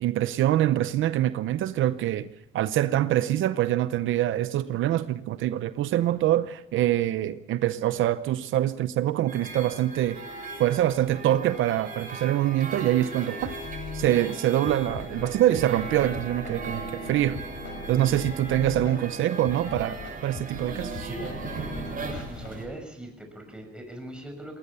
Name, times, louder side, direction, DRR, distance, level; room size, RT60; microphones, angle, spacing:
voice 1, 0.0-10.2 10.6-13.6 13.9-17.4 17.9-21.1, right 13 dB, 80° right, 0.8 m, -25 dB
sound 1, 9.3-22.6, right 3 dB, 45° right, 7.6 m, -38 dB
sound 2, 13.4-22.5, left 3 dB, 70° left, 5.4 m, -39 dB
voice 2, 22.0-24.6, right 1 dB, 5° right, 6.5 m, -41 dB
19.5 x 19.0 x 6.9 m
cardioid pair, 90°, 20 cm